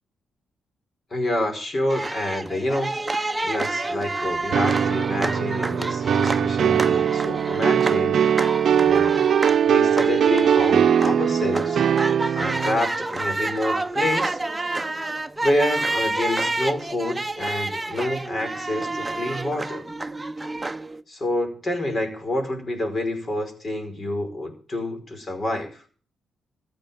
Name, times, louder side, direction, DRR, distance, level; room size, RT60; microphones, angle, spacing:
voice 1, 1.1-3.0 3.4-8.3 8.8-11.8 12.3-14.4 15.4-19.9 21.1-25.8, left 1 dB, 40° left, 6 dB, 5.2 m, -28 dB
sound 1, 1.9-21.0, right 2 dB, 15° right, 1.0 m, -29 dB
sound 2, 4.5-12.8, right 8 dB, 65° right, 0.8 m, -20 dB
14.5 x 9.3 x 7.2 m, 0.41 s
cardioid pair, 95°, 0 cm